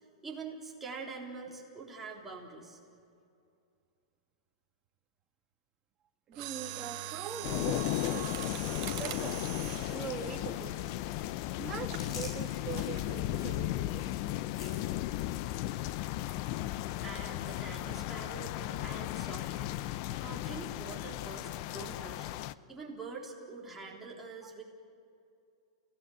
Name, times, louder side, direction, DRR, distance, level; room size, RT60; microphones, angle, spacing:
voice 1, 0.2-2.8 17.0-19.8 20.2-22.3 22.7-24.6, right 4 dB, 10° right, -3 dB, 3.8 m, -45 dB
voice 2, 6.3-8.3 9.0-9.4 9.9-10.9 11.6-14.1 20.1-20.2, right 7 dB, 25° right, 3 dB, 2.1 m, -42 dB
Mechanisms, 6.3-11.3 11.9-12.1 12.8-13.1 13.4-13.5, right 13 dB, 45° right, 1.3 m, -42 dB
sound 1, 7.2-11.0 11.2-18.2 18.4-18.8 19.2-19.9 20.4-20.5, left 3 dB, 80° left, 6.4 m, -53 dB
sound 2, 7.4-22.5, left 15 dB, 45° left, 0.6 m, -35 dB
30.0 x 17.5 x 8.0 m, 2.5 s
hypercardioid pair, 140°, 3 cm